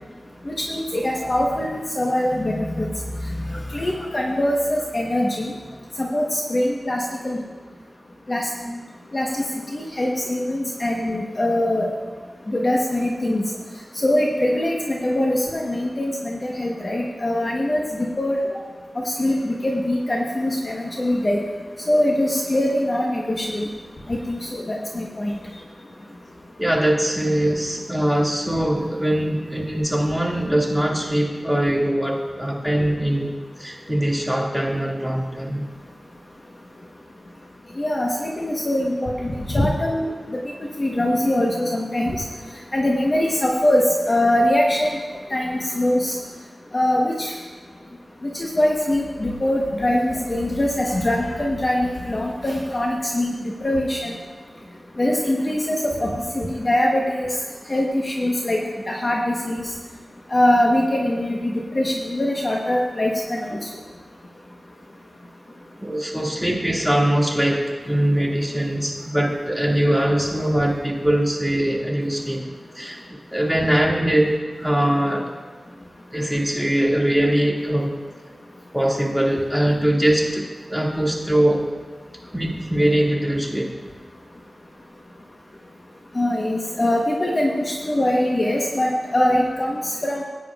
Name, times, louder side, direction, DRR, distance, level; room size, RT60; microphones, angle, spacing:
voice 1, 0.5-2.9 3.7-5.5 6.0-7.4 8.3-8.5 9.1-9.4 9.7-11.9 12.5-13.5 14.0-17.9 18.2-18.4 19.0-21.4 21.9-23.7 24.1-25.3 37.8-40.4 40.8-42.2 42.7-45.0 45.3-46.2 46.7-47.3 48.3-54.1 55.0-57.3 57.7-59.7 60.3-63.6 86.1-90.2, left 1 dB, 35° left, -1 dB, 1.1 m, -22 dB
voice 2, 26.6-35.6 65.8-72.5 72.7-73.0 73.3-75.3 76.1-78.0 78.7-81.6 82.3-83.7 87.2-87.3, right 1 dB, 5° left, -3 dB, 2.1 m, -22 dB
18.5 x 9.2 x 2.4 m, 1.4 s
wide cardioid pair, 95°, 0 cm